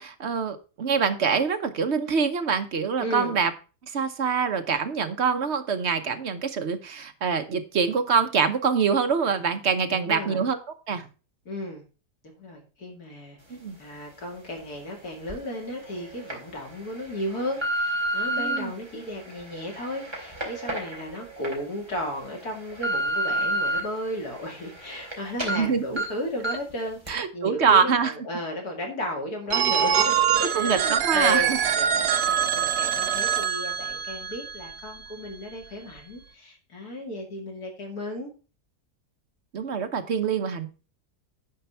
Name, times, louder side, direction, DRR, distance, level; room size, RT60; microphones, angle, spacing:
voice 1, 0.0-3.5 3.8-10.6 10.9-11.1 13.5-13.8 18.4-18.7 25.5-26.0 27.1-28.1 30.5-31.6 39.5-40.7, right 6 dB, 50° right, 8 dB, 1.1 m, -25 dB
voice 2, 3.0-3.4 9.9-10.4 11.5-11.8 12.4-13.4 13.8-38.3, left 1 dB, 70° left, 0 dB, 3.1 m, -34 dB
sound 1, 15.3-15.4 16.0-16.3 17.0-18.6 19.2-21.5 22.0-22.1 22.5-23.8 24.2-25.1 25.4-25.6 26.0-26.1 26.4-26.7 27.1-27.2, right 1 dB, 15° right, 3.1 m, -29 dB
Telephone, 29.5-35.3, right 8 dB, 75° right, 1.4 m, -24 dB
10.5 x 4.6 x 5.6 m, 0.34 s
omnidirectional pair, 1.7 m